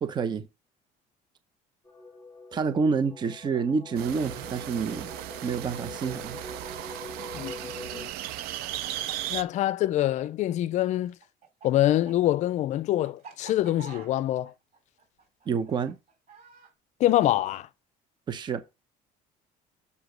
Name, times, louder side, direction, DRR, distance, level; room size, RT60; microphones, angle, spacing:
voice 1, 0.0-0.5 2.5-5.1 5.4-6.4 15.5-16.0 18.3-18.6, right 5 dB, 30° right, 0.8 m, -28 dB
sound 1, 1.8-8.1, left 3 dB, 10° left, 1.3 m, -44 dB
sound 2, 4.0-9.4, right 13 dB, 80° right, 0.7 m, -36 dB
Chicken rooster, 6.4-10.8 11.1-16.7, right 5 dB, 50° right, 3.5 m, -49 dB
voice 2, 7.3-8.1 9.3-11.1 11.6-14.5 17.0-17.7, left 14 dB, 50° left, 0.5 m, -25 dB
6.8 x 5.0 x 5.1 m
cardioid pair, 155°, 16 cm